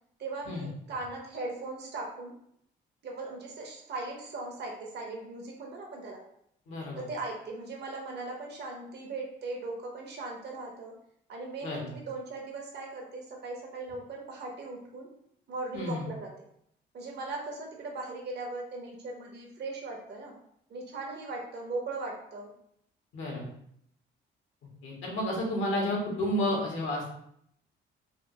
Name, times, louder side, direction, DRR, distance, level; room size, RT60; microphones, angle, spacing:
voice 1, 0.2-2.3 3.0-6.2 7.0-10.9 11.3-15.1 15.5-16.3 16.9-20.3 20.7-22.5, right 3 dB, 60° right, -1 dB, 1.0 m, -38 dB
voice 2, 6.7-7.1 11.6-11.9 15.7-16.1 23.1-23.5 24.8-27.1, left 1 dB, 80° left, -2 dB, 1.3 m, -31 dB
3.4 x 2.5 x 3.0 m, 0.70 s
cardioid pair, 90°, 20 cm